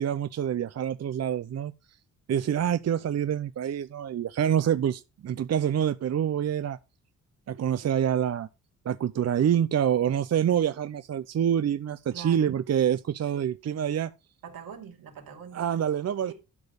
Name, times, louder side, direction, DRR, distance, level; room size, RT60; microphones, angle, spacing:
voice 1, 0.0-1.7 2.3-6.8 7.5-8.5 8.8-14.1 15.5-16.3, right 9 dB, 45° right, 0.6 m, -26 dB
voice 2, 12.1-12.5 13.3-13.5 14.4-15.9 16.2-16.3, right 7 dB, 75° right, 2.8 m, -44 dB
12.0 x 5.0 x 5.3 m
supercardioid pair, 60°, 36 cm